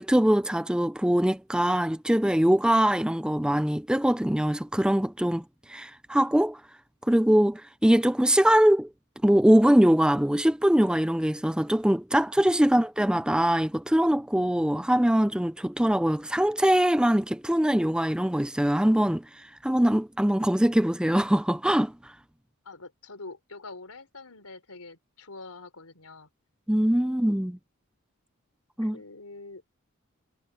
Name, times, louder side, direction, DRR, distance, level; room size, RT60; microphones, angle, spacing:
voice 1, 0.0-5.4 5.7-6.6 7.1-8.9 9.2-22.1 26.7-27.6 28.8-29.0, equal, 5° right, 0.5 m, -22 dB
voice 2, 22.6-26.3 27.0-27.2 28.8-29.7, left 3 dB, 85° left, 4.1 m, -45 dB
head